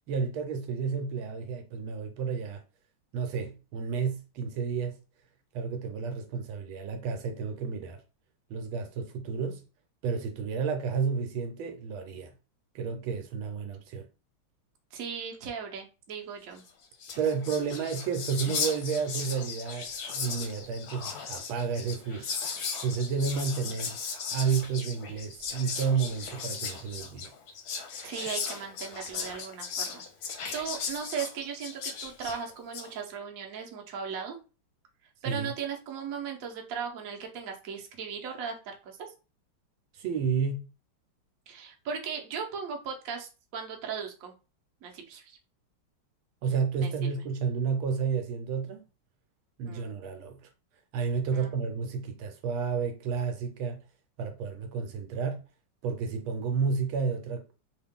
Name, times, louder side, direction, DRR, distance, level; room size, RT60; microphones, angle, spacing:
voice 1, 0.1-2.6 3.1-5.0 5.5-8.0 8.5-9.6 10.0-12.3 12.7-14.0 17.2-22.3 22.8-24.0 24.3-27.3 35.2-35.5 39.9-40.7 46.4-48.9 49.6-50.5 50.9-53.8 54.2-55.4 55.8-57.4, right 5 dB, 85° right, 1.5 m, -31 dB
voice 2, 14.9-16.6 28.0-30.0 30.5-34.4 35.2-39.0 41.5-44.3 44.8-45.4 46.8-47.2 49.6-49.9 51.3-51.5, right 6 dB, 55° right, 1.0 m, -37 dB
Whispering, 16.7-16.8 16.9-32.9, left 5 dB, 65° left, 1.0 m, -37 dB
3.7 x 2.4 x 3.6 m
omnidirectional pair, 2.2 m